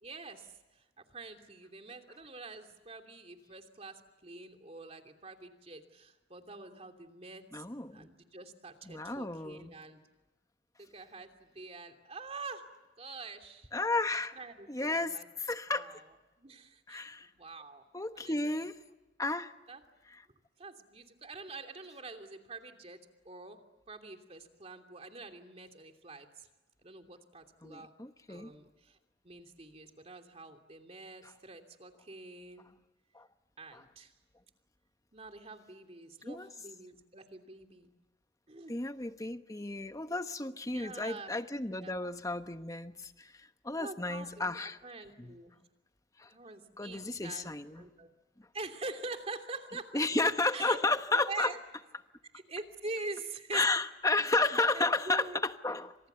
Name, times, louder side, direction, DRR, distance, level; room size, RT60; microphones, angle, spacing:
voice 1, 0.0-7.6 7.9-10.0 10.8-12.7 12.9-13.7 14.3-15.3 15.7-16.1 16.4-17.8 18.1-18.6 19.7-19.8 20.6-23.0 23.2-23.6 23.9-26.5 26.8-27.9 28.3-29.0 29.2-32.7 33.6-34.1 35.1-37.9 38.5-38.8 40.6-41.3 41.7-42.1 43.8-45.5 46.3-48.1 48.5-50.1 50.5-50.8 51.1-51.6 52.3-53.7 54.7-55.4, right 3 dB, 35° right, 6 dB, 2.9 m, -45 dB
voice 2, 7.5-8.1 8.9-9.7 13.7-14.4 14.7-16.0 16.9-17.3 17.9-18.8 19.2-19.5 27.6-28.5 31.2-31.3 33.1-33.3 33.7-33.8 36.3-36.5 38.7-44.8 45.2-45.4 46.2-46.3 46.8-47.9 49.9-51.5 53.5-55.9, left 2 dB, 20° left, 9 dB, 1.2 m, -32 dB
29.5 x 27.0 x 7.0 m, 1.1 s
head